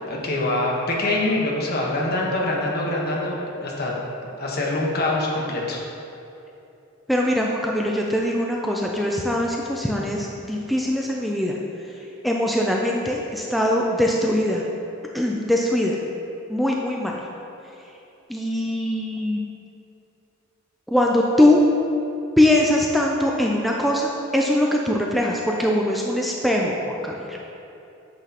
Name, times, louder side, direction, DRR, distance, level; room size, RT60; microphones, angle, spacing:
voice 1, 0.0-3.9 4.4-5.8, left 2 dB, 50° left, -3 dB, 1.2 m, -24 dB
voice 2, 7.1-11.6 11.9-12.0 12.2-14.6 15.1-16.0 16.5-17.2 18.3-19.5 20.9-21.6 22.4-27.4, left 1 dB, ahead, -2 dB, 0.4 m, -22 dB
8.9 x 6.0 x 2.9 m, 2.9 s
head